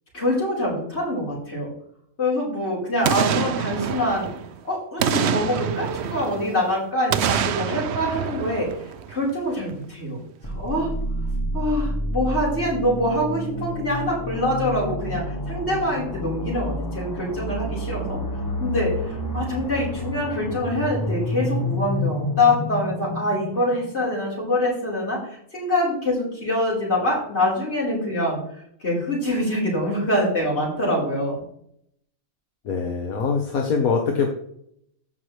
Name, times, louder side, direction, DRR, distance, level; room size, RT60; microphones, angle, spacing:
voice 1, 0.1-1.7 2.2-4.3 4.6-8.7 9.1-10.2 10.4-10.9 11.5-18.2 18.6-25.2 25.5-28.4 28.8-31.4, left 1 dB, 45° left, -5 dB, 4.6 m, -25 dB
Boom, 3.0-4.6 5.0-6.6 7.1-9.3 9.7-9.8, right 8 dB, 60° right, 0.8 m, -26 dB
sound 1, 10.4-24.2, left 1 dB, 20° left, 0.6 m, -29 dB
voice 2, 32.6-34.3, left 5 dB, 75° left, 2 dB, 1.6 m, -23 dB
15.0 x 6.0 x 3.3 m, 0.68 s
omnidirectional pair, 1.5 m